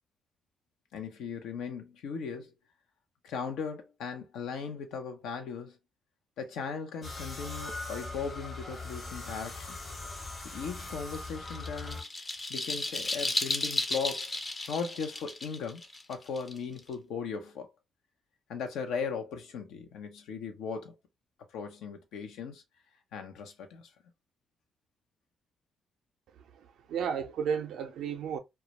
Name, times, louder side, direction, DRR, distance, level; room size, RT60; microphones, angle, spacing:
voice 1, 0.9-2.5 3.2-5.8 6.4-9.8 10.4-12.0 12.5-14.3 14.7-15.8 16.1-17.7 18.5-21.0 21.5-22.6 23.1-23.9, left 6 dB, 80° left, 0.5 m, -38 dB
sound 1, 7.0-12.0, left 2 dB, 50° left, 1.1 m, -40 dB
sound 2, 11.1-16.9, left 2 dB, 30° left, 0.5 m, -34 dB
voice 2, 26.3-28.4, right 7 dB, 75° right, 0.5 m, -34 dB
2.2 x 2.1 x 2.8 m
supercardioid pair, 50°, 0 cm